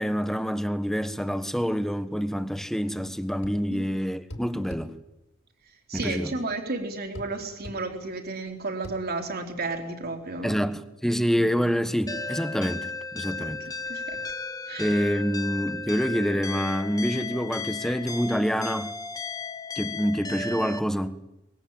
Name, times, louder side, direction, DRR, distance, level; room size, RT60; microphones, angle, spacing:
voice 1, 0.0-4.9 5.9-6.3 10.4-13.6 14.8-18.9 19.7-21.2, equal, ahead, 1.4 m, -27 dB
sound 1, 3.4-3.6 4.3-4.9 6.0-6.2 7.1-7.3 7.6-7.8 8.8-9.0, left 1 dB, 65° left, 6.2 m, -39 dB
voice 2, 5.9-10.6 13.4-13.5 13.9-14.2 14.7-15.1, right 3 dB, 50° right, 3.8 m, -33 dB
sound 2, 12.1-20.8, left 4 dB, 20° left, 1.1 m, -35 dB
24.0 x 22.0 x 8.8 m
head